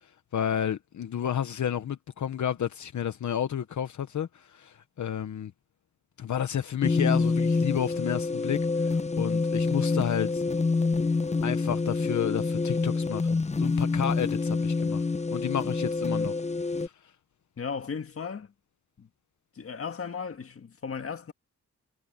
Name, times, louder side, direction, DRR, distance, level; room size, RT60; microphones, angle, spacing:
voice 1, 0.0-5.5 6.2-10.4 11.4-15.0 15.3-16.3 16.8-16.9, left 9 dB, 70° left, 1.0 m, -31 dB
sound 1, 6.8-16.9, left 3 dB, 25° left, 0.6 m, -27 dB
voice 2, 17.6-18.5 19.0-19.1 19.6-21.3, left 6 dB, 45° left, 1.8 m, -36 dB
wide cardioid pair, 130°, 30 cm